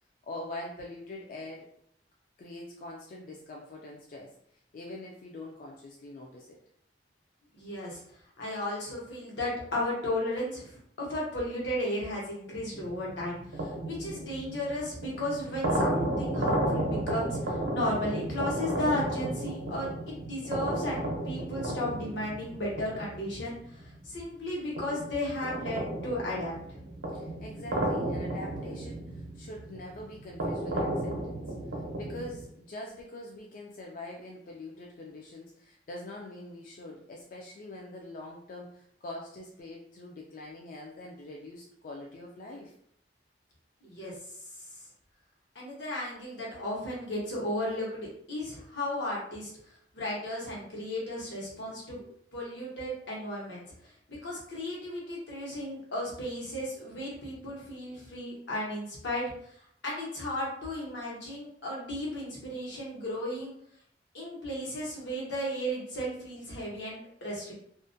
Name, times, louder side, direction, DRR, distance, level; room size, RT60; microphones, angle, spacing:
voice 1, 0.2-1.7 2.4-4.3 4.7-6.6 27.1-31.5 32.0-42.7 52.0-52.1, left 2 dB, 45° left, -1 dB, 0.3 m, -44 dB
voice 2, 7.5-8.0 8.4-26.5 43.8-44.1 45.5-49.5 49.9-52.0 52.3-53.6 54.1-59.3 59.8-63.5 64.1-67.5, left 1 dB, 85° left, -4 dB, 1.0 m, -34 dB
sound 1, 12.5-24.2 24.8-32.4, right 1 dB, 90° right, 0.6 m, -33 dB
2.4 x 2.1 x 2.5 m, 0.67 s
head